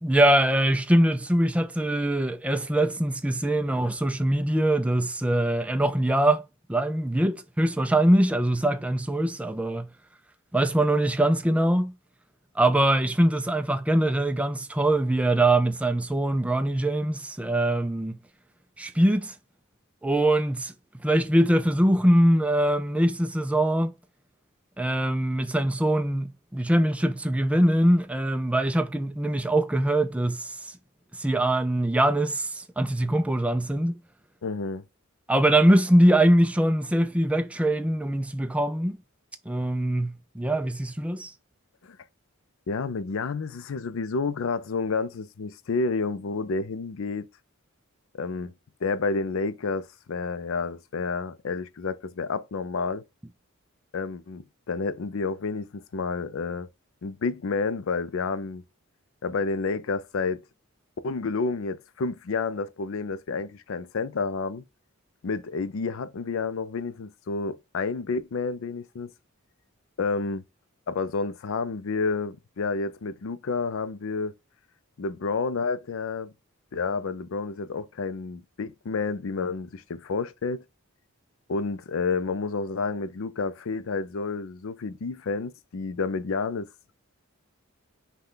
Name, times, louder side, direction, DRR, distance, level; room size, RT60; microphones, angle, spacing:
voice 1, 0.0-6.4 6.7-9.9 10.5-11.9 12.6-18.2 18.8-19.3 20.0-20.7 21.0-23.9 24.8-30.7 31.1-34.0 35.3-39.0 39.5-41.3, right 1 dB, 5° right, 0.3 m, -23 dB
voice 2, 34.4-34.8 41.8-42.0 42.7-47.3 48.1-48.5 48.8-53.0 53.9-56.7 57.0-58.6 59.2-60.4 61.0-64.6 65.2-69.1 70.0-70.4 70.9-74.3 75.0-76.3 76.7-80.6 81.5-86.7, left 4 dB, 65° left, 0.4 m, -30 dB
5.5 x 2.3 x 3.7 m
head